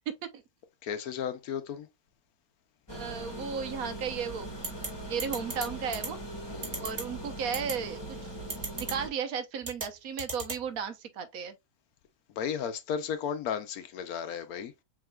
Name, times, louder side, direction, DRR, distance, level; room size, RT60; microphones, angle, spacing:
voice 1, 0.1-0.4 2.9-4.5 5.0-6.2 6.8-8.3 8.7-11.5, right 6 dB, 70° right, 1.2 m, -35 dB
voice 2, 0.8-1.9 6.5-6.9 12.3-14.8, left 7 dB, 75° left, 1.2 m, -34 dB
sound 1, 2.9-9.1, right 1 dB, 20° left, 1.1 m, -41 dB
sound 2, 4.6-4.9 5.2-5.6 5.9-6.1 6.6-7.0 7.5-7.7 8.5-8.9 9.6-9.9 10.2-10.6, right 3 dB, 40° right, 2.1 m, -34 dB
7.2 x 2.9 x 2.3 m
omnidirectional pair, 1.6 m